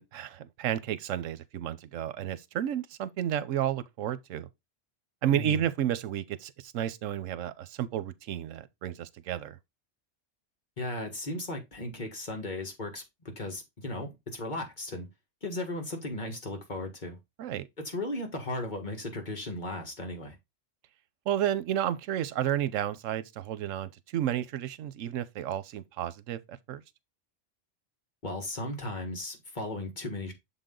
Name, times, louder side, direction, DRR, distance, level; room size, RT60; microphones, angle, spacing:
voice 1, 0.0-4.5 5.2-9.6 17.4-17.7 21.3-26.8, right 11 dB, 90° right, 1.0 m, -32 dB
voice 2, 5.3-5.6 10.8-13.0 13.3-15.1 15.4-17.2 17.8-20.3 28.2-30.3, left 2 dB, 40° left, 1.7 m, -36 dB
6.8 x 4.1 x 3.7 m
omnidirectional pair, 1.3 m